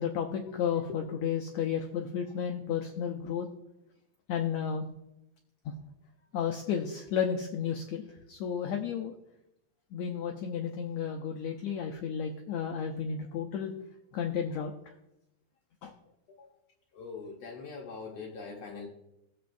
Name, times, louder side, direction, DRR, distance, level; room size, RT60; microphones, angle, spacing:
voice 1, 0.0-3.5 4.3-4.9 6.3-9.1 9.9-13.7 14.1-14.7 15.8-15.9, left 7 dB, 85° left, 3 dB, 1.6 m, -32 dB
voice 2, 16.9-18.9, left 4 dB, 65° left, 0 dB, 1.7 m, -42 dB
18.0 x 7.7 x 2.6 m, 0.87 s
omnidirectional pair, 4.1 m